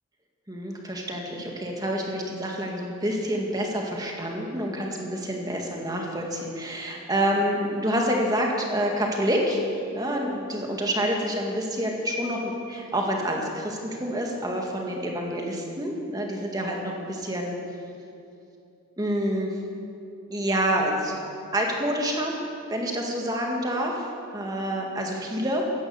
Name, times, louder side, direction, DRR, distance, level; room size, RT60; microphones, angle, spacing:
voice 1, 0.5-9.6 9.9-17.6 19.0-19.6 20.3-21.1 21.5-22.4 22.7-24.1 24.3-25.6, equal, 20° right, 0 dB, 2.0 m, -27 dB
16.0 x 11.5 x 7.1 m, 2.6 s
head